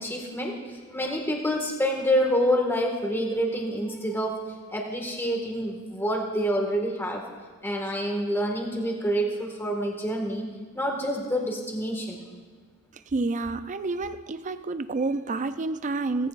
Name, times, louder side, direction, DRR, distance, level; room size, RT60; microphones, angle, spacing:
voice 1, 0.0-7.3 7.6-10.5 10.7-12.2, equal, 10° left, 1.8 m, -27 dB
voice 2, 13.1-16.3, right 3 dB, 35° right, 0.4 m, -29 dB
17.0 x 15.5 x 2.5 m
head